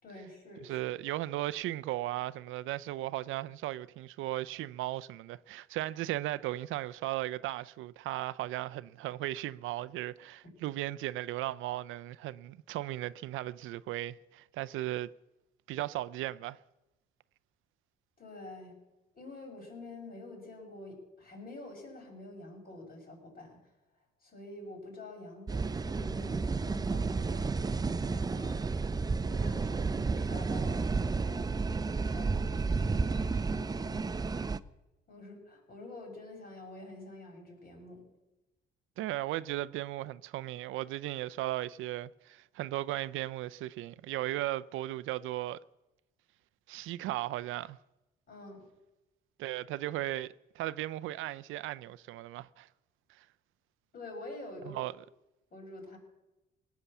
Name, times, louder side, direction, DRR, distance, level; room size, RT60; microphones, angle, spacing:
voice 1, 0.0-1.0 18.2-18.8 19.1-23.6 24.2-28.7 29.3-31.5 31.9-34.3 35.1-38.0 48.3-48.7 53.9-54.8 55.5-56.0, left 2 dB, 50° left, 5.9 m, -47 dB
voice 2, 0.6-15.1 15.7-16.6 39.0-45.6 46.7-47.8 49.4-50.3 50.5-52.7 53.2-53.3 54.7-54.9, right 15 dB, 85° right, 0.5 m, -36 dB
sound 1, 25.5-34.6, right 4 dB, 20° right, 0.5 m, -31 dB
19.0 x 8.4 x 7.1 m
cardioid pair, 90°, 20 cm